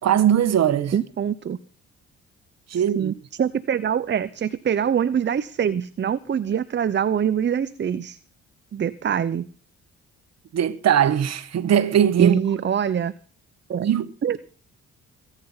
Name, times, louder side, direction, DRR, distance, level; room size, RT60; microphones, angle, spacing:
voice 1, 0.0-0.9 2.7-3.1 10.5-12.4 13.8-14.1, right 9 dB, 60° right, 1.4 m, -20 dB
voice 2, 0.9-1.6 3.0-8.2 8.7-9.5 12.2-13.1 13.7-13.9 14.2-14.4, right 8 dB, 35° right, 0.7 m, -24 dB
22.0 x 9.9 x 5.6 m
cardioid pair, 90°, 30 cm